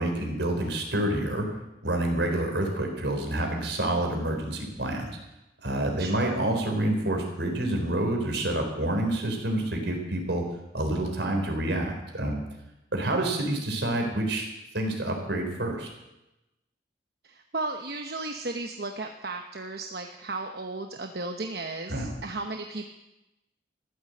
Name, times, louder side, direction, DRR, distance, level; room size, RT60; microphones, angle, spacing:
voice 1, 0.0-1.5 1.8-5.1 5.6-10.4 10.7-12.4 12.9-14.5 14.7-15.9 21.9-22.1, right 1 dB, 80° right, 3 dB, 4.0 m, -28 dB
voice 2, 6.0-6.4 13.0-13.3 17.2-22.9, right 3 dB, 60° right, 4 dB, 1.0 m, -35 dB
14.5 x 12.0 x 7.8 m, 0.94 s
head